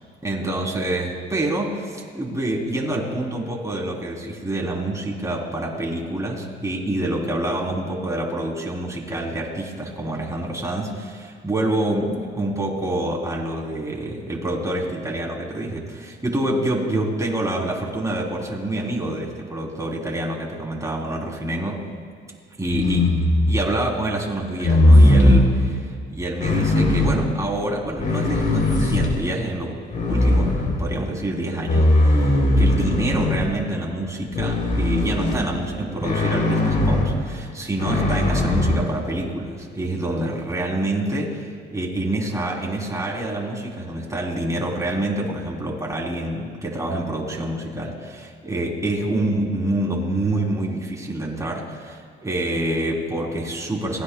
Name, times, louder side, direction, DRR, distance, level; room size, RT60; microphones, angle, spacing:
voice 1, 0.2-21.8 22.6-23.2 23.5-29.7 30.1-30.5 30.8-54.0, right 1 dB, 15° right, -2 dB, 3.5 m, -27 dB
sound 1, 22.7-23.7 24.6-25.5 26.4-27.2 27.9-29.3 29.9-31.0 31.6-33.5 34.3-35.5 36.0-37.1 37.8-38.8, left 1 dB, 45° left, 3.5 m, -18 dB
30.0 x 17.0 x 2.3 m, 2.1 s
cardioid pair, 90°, 20 cm